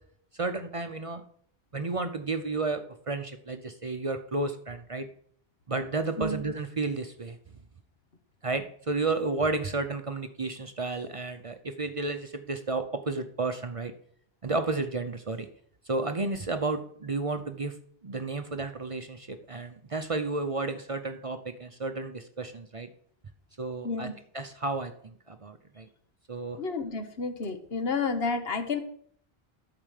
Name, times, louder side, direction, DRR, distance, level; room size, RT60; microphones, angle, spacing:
voice 1, 0.3-1.2 1.7-5.1 5.7-7.4 8.4-13.9 14.4-15.5 15.9-17.7 18.0-22.9 23.6-24.1 24.3-25.9 26.3-26.6, right 3 dB, 40° right, 7 dB, 0.6 m, -32 dB
voice 2, 26.6-28.8, left 4 dB, 75° left, 8 dB, 1.4 m, -30 dB
12.5 x 4.9 x 6.5 m, 0.63 s
omnidirectional pair, 1.0 m